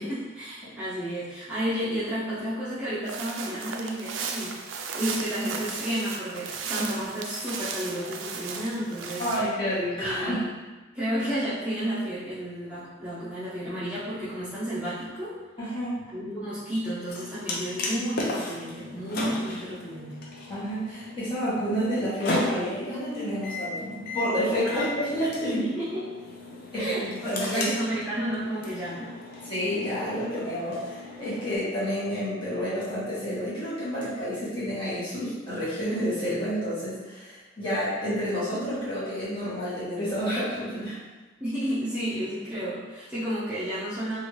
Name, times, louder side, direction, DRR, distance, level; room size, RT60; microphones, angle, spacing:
voice 1, 0.0-4.6 4.9-9.3 9.9-10.4 10.9-15.4 16.1-20.2 24.7-24.9 25.5-26.0 26.7-29.1 41.4-44.2, equal, 5° right, -13 dB, 0.7 m, -31 dB
sound 1, 3.1-9.4, right 5 dB, 85° right, 0.4 m, -35 dB
voice 2, 9.2-10.4 15.6-16.0 20.5-25.6 26.7-27.7 29.5-41.0, equal, 25° left, -11 dB, 1.4 m, -29 dB
sound 2, 17.1-31.6, left 2 dB, 55° left, 0.5 m, -36 dB
3.0 x 2.5 x 3.1 m, 1.2 s
head